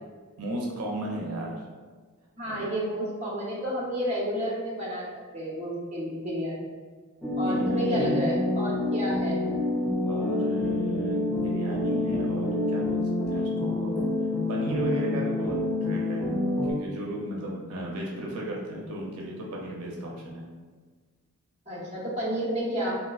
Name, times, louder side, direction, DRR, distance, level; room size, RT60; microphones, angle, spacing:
voice 1, 0.4-1.6 2.4-2.7 7.3-8.3 10.0-14.0 14.5-20.6, right 1 dB, 80° right, -2 dB, 0.5 m, -35 dB
voice 2, 2.4-5.1 5.3-6.7 7.4-9.5 21.7-22.9, equal, 30° right, -5 dB, 0.7 m, -31 dB
sound 1, 7.2-16.7, left 2 dB, 5° left, 0.4 m, -27 dB
3.4 x 2.5 x 2.3 m, 1.4 s
head